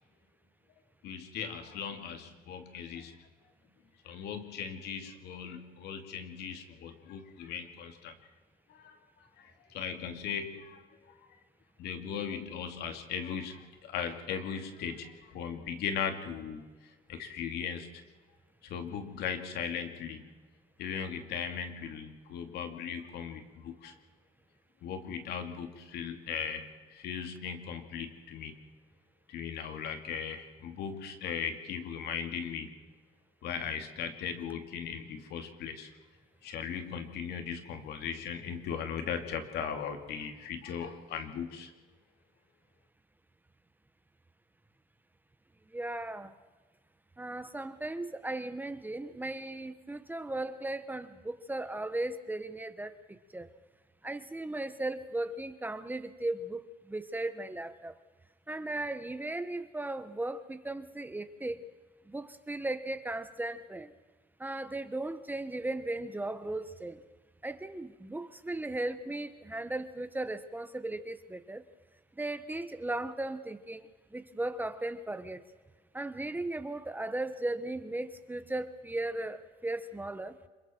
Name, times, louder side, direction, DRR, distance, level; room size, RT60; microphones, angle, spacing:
voice 1, 1.0-3.1 4.0-8.1 8.7-9.0 9.4-11.2 11.8-16.7 17.1-18.0 18.6-20.3 20.8-23.9 24.8-28.6 29.3-32.7 33.4-35.9 36.4-41.7, left 7 dB, 75° left, 6 dB, 2.6 m, -38 dB
voice 2, 45.7-46.4 47.2-53.5 54.0-57.9 58.5-61.7 62.1-63.9 64.4-67.0 67.4-71.6 72.2-75.4 75.9-80.4, right 2 dB, 10° right, 11 dB, 1.1 m, -37 dB
26.5 x 23.0 x 4.5 m, 1.3 s
cardioid pair, 110°, 17 cm